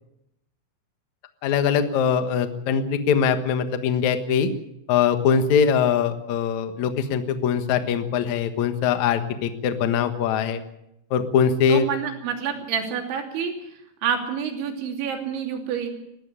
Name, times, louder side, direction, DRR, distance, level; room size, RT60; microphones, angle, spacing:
voice 1, 1.4-4.5 4.9-10.6 11.1-11.8, left 7 dB, 85° left, 8 dB, 1.6 m, -22 dB
voice 2, 11.7-13.5 14.0-15.9, right 7 dB, 70° right, 3 dB, 5.1 m, -28 dB
19.5 x 14.5 x 9.9 m, 0.85 s
omnidirectional pair, 5.7 m